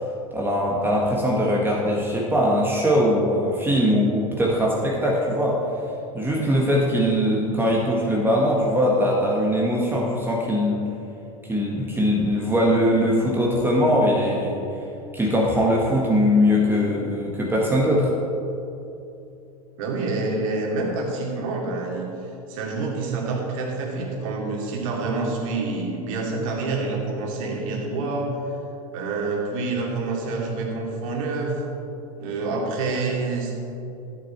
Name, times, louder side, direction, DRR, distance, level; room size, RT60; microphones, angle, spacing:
voice 1, 0.3-5.6 6.1-10.8 11.5-14.6 15.1-18.1, equal, 10° right, -3 dB, 1.6 m, -21 dB
voice 2, 19.8-28.5 28.9-31.6 32.2-33.5, right 3 dB, 65° right, -1 dB, 2.5 m, -27 dB
12.0 x 7.6 x 4.4 m, 2.8 s
hypercardioid pair, 90°, 19 cm